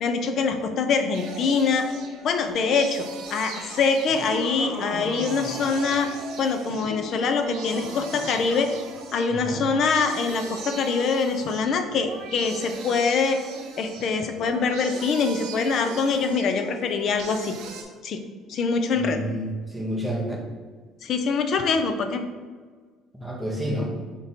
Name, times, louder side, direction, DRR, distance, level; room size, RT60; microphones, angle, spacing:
voice 1, 0.0-1.9 2.2-6.1 6.4-8.7 9.1-13.4 13.8-17.6 18.0-18.2 18.5-19.2 21.0-22.2, left 5 dB, 55° left, 7 dB, 0.5 m, -24 dB
sound 1, 1.1-17.8, right 5 dB, 75° right, 0.7 m, -39 dB
Laughter, 4.0-6.2 6.7-9.0, left 1 dB, 85° left, 1.4 m, -37 dB
voice 2, 9.3-9.6 19.0-20.5 23.1-23.9, right 1 dB, 5° left, -1 dB, 0.7 m, -29 dB
4.5 x 2.7 x 4.2 m, 1.5 s
cardioid pair, 110°, 0 cm